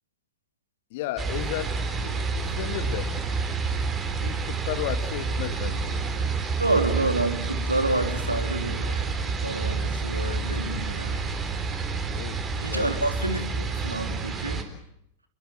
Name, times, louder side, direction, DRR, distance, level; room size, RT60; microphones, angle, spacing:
voice 1, 0.9-3.2 4.2-6.0 12.1-13.0, left 13 dB, 50° left, 11 dB, 2.1 m, -34 dB
sound 1, 1.2-14.6, right 4 dB, 25° right, 4.1 m, -29 dB
voice 2, 6.6-9.1 9.4-11.3 12.6-14.6, right 2 dB, 85° right, 7 dB, 3.3 m, -28 dB
29.5 x 22.0 x 7.7 m, 0.76 s
figure-of-eight pair, 90°, 0 cm